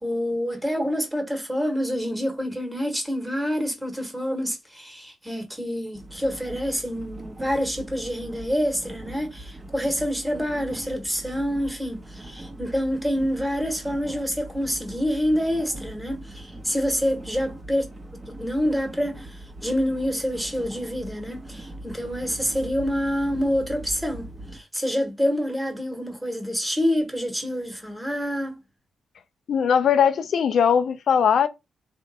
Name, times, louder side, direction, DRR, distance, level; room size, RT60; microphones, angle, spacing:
voice 1, 0.0-17.8 18.3-28.6, equal, 5° right, 1.3 m, -27 dB
sound 1, 5.9-24.6, right 1 dB, 25° right, 0.8 m, -41 dB
voice 2, 29.5-31.5, left 7 dB, 70° left, 0.5 m, -20 dB
3.4 x 2.6 x 4.1 m
cardioid pair, 90°, 0 cm